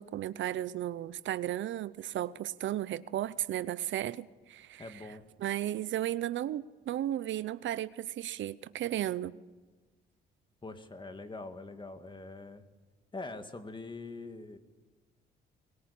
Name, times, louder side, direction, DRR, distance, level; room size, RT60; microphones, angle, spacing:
voice 1, 0.0-4.9 5.4-9.4, right 12 dB, 70° right, 0.7 m, -34 dB
voice 2, 4.8-5.2 10.6-12.6 13.1-14.6, left 3 dB, 25° left, 2.1 m, -43 dB
22.0 x 18.5 x 8.6 m
cardioid pair, 90°, 20 cm